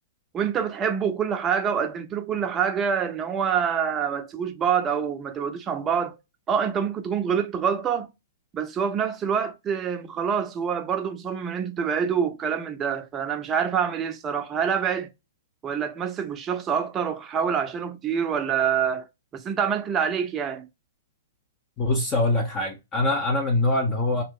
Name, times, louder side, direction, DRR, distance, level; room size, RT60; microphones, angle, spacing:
voice 1, 0.3-6.2 6.5-8.1 8.5-15.1 15.6-19.1 19.3-20.7, right 7 dB, 25° right, 0.6 m, -26 dB
voice 2, 21.8-24.2, left 2 dB, 25° left, 0.7 m, -23 dB
2.7 x 2.0 x 3.6 m
hypercardioid pair, 125°, 0 cm